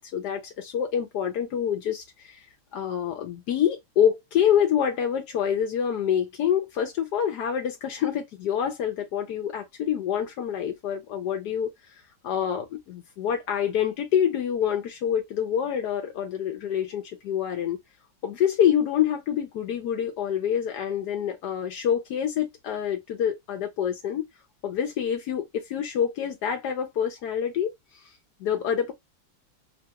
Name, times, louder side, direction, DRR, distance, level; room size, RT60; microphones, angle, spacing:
voice 1, 0.1-2.5 2.7-11.7 12.2-17.8 18.2-24.2 24.6-28.0 28.4-28.9, left 9 dB, 80° left, 1.2 m, -26 dB
3.3 x 2.3 x 2.8 m
omnidirectional pair, 1.8 m